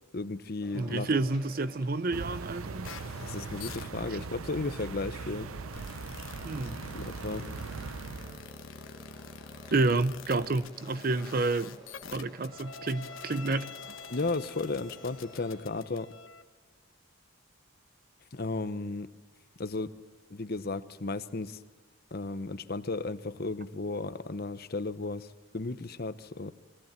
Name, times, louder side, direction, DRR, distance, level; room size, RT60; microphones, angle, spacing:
voice 1, 0.1-1.1 3.2-5.5 6.9-7.5 14.1-16.1 18.3-19.1 19.6-19.9 20.3-21.6 22.1-26.5, left 3 dB, 50° left, 0.8 m, -34 dB
sound 1, 0.6-15.6, equal, 20° right, 3.6 m, -53 dB
voice 2, 0.7-2.9 6.4-6.8 9.7-11.8 12.1-13.7, right 3 dB, 45° right, 0.6 m, -29 dB
sound 2, 2.1-8.5, right 4 dB, 85° right, 0.6 m, -40 dB
sound 3, 2.8-16.4, left 5 dB, 70° left, 1.1 m, -47 dB
23.0 x 17.0 x 7.4 m
head